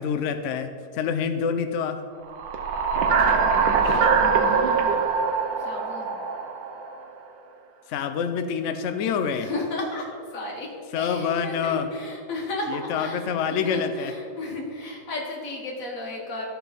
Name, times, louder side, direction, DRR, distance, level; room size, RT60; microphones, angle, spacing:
voice 1, 0.0-2.0 7.9-9.5 10.9-11.9 12.7-14.1, left 6 dB, 85° left, 8 dB, 0.6 m, -26 dB
sound 1, 2.3-7.0, right 5 dB, 80° right, 1.5 m, -22 dB
voice 2, 3.2-5.2 5.6-6.2 9.4-16.5, left 2 dB, 50° left, -1 dB, 1.8 m, -35 dB
13.0 x 4.6 x 5.2 m, 2.4 s
omnidirectional pair, 2.0 m